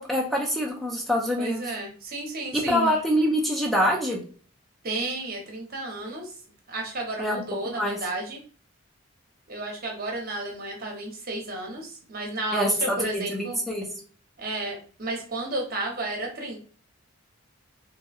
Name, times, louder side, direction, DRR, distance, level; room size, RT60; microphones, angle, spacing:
voice 1, 0.0-1.7 2.5-4.2 7.2-7.4 7.7-8.0 12.5-13.9, equal, ahead, -1 dB, 0.6 m, -25 dB
voice 2, 1.4-2.9 4.8-6.3 6.7-8.4 9.5-13.6 14.4-16.6, right 2 dB, 45° right, 1 dB, 0.8 m, -32 dB
3.0 x 2.7 x 2.4 m, 0.42 s
head